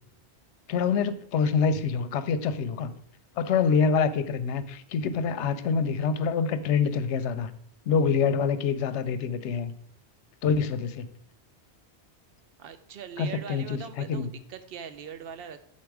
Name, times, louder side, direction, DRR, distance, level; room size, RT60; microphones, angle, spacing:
voice 1, 0.7-2.9 3.4-7.5 7.9-9.7 10.4-11.1 13.2-13.8 14.1-14.3, left 6 dB, 85° left, 12 dB, 0.9 m, -26 dB
voice 2, 12.6-15.6, right 7 dB, 65° right, 10 dB, 0.8 m, -41 dB
7.5 x 4.3 x 4.6 m, 0.69 s
omnidirectional pair, 1.1 m